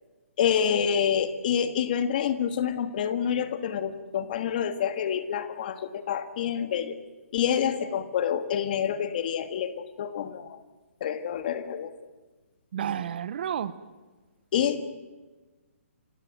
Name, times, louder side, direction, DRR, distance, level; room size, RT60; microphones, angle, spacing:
voice 1, 0.4-7.0 7.3-10.6 11.0-11.9 14.5-14.9, left 8 dB, 40° left, 11 dB, 1.8 m, -27 dB
voice 2, 12.7-13.7, right 9 dB, 45° right, 16 dB, 1.0 m, -31 dB
29.0 x 17.5 x 9.1 m, 1.3 s
hypercardioid pair, 165°, 8 cm